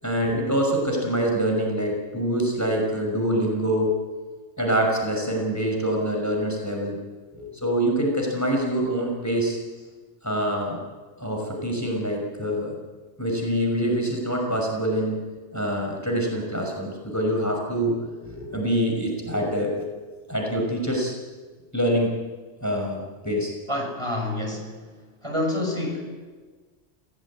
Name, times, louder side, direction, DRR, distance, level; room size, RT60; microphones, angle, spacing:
voice 1, 0.0-3.9 4.6-7.0 7.3-9.6 10.2-10.8 11.2-12.8 13.2-15.2 15.5-20.0 20.3-21.1 21.7-22.2 22.6-23.5, equal, 15° left, 0 dB, 5.8 m, -25 dB
voice 2, 23.7-24.7 25.2-26.1, left 1 dB, 25° right, 1 dB, 6.2 m, -27 dB
29.5 x 17.5 x 8.7 m, 1.4 s
omnidirectional pair, 1.3 m